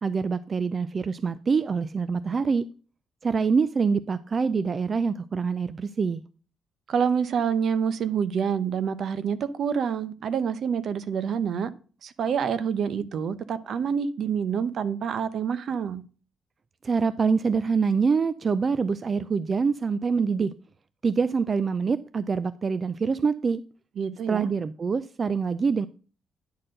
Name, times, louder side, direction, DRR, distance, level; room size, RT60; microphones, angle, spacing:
voice 1, 0.0-2.7 3.2-6.2 16.8-20.5 21.0-23.6 24.3-25.9, right 5 dB, 40° right, 0.4 m, -25 dB
voice 2, 6.9-11.7 12.0-16.0 24.0-24.5, right 7 dB, 60° right, 0.8 m, -27 dB
10.5 x 4.4 x 6.4 m
cardioid pair, 90°, 0 cm